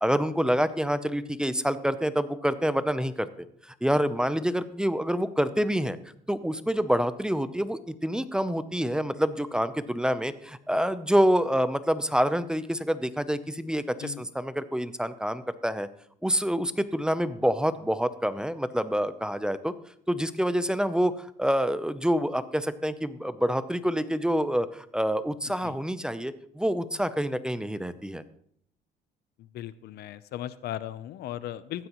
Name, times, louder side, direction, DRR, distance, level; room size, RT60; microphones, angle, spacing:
voice 1, 0.0-3.3 3.7-6.0 6.3-15.9 16.2-19.7 20.1-28.2, equal, 5° right, 13 dB, 0.6 m, -27 dB
voice 2, 29.4-31.9, left 12 dB, 70° left, 15 dB, 0.7 m, -37 dB
15.0 x 12.0 x 3.1 m, 0.65 s
cardioid pair, 110°, 17 cm